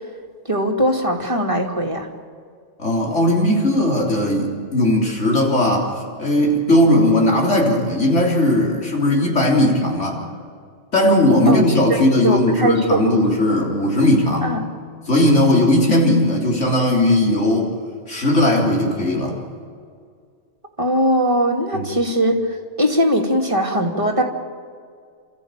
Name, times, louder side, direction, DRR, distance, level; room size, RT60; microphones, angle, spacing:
voice 1, 0.5-2.1 11.5-11.6 11.9-12.0 12.2-13.2 14.4-14.6 20.8-24.2, equal, 25° right, 0 dB, 2.6 m, -20 dB
voice 2, 2.8-5.9 6.2-10.2 10.9-14.6 15.1-17.7 18.1-19.4 21.7-21.9, left 1 dB, 75° left, -1 dB, 3.8 m, -17 dB
29.5 x 14.0 x 9.0 m, 2.2 s
omnidirectional pair, 1.2 m